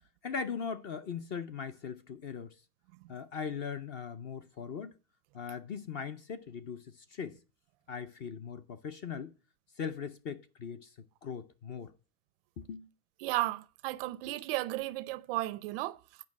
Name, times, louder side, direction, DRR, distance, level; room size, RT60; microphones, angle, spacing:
voice 1, 0.2-2.6 3.1-4.9 5.3-7.4 7.9-9.3 9.8-10.9 11.2-11.9 12.6-12.9, left 6 dB, 25° left, 0.4 m, -39 dB
voice 2, 13.2-16.0, right 18 dB, 40° right, 0.4 m, -34 dB
9.4 x 5.3 x 6.2 m
supercardioid pair, 130°, 47 cm